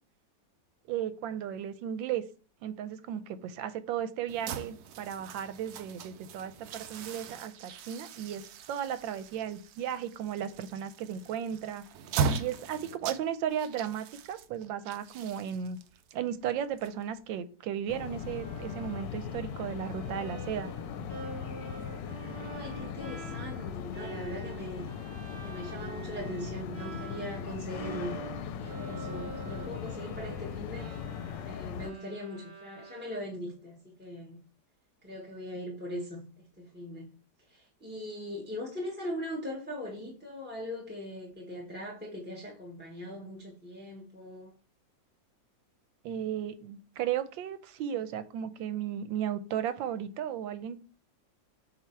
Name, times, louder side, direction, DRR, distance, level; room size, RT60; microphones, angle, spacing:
voice 1, 0.9-2.2 2.6-8.4 8.7-11.8 12.4-15.8 16.1-20.7 46.0-50.8, right 9 dB, 90° right, 1.4 m, -35 dB
sound 1, 4.3-17.4, right 5 dB, 70° right, 0.9 m, -39 dB
sound 2, 17.9-31.9, left 7 dB, 75° left, 1.2 m, -39 dB
Bowed string instrument, 18.1-27.5 27.7-33.5, right 4 dB, 35° right, 0.9 m, -46 dB
voice 2, 22.2-24.9 25.4-28.2 28.5-31.0 31.4-34.4 35.0-37.1 37.4-44.5, equal, 5° right, 0.9 m, -40 dB
7.7 x 2.9 x 4.4 m
omnidirectional pair, 2.0 m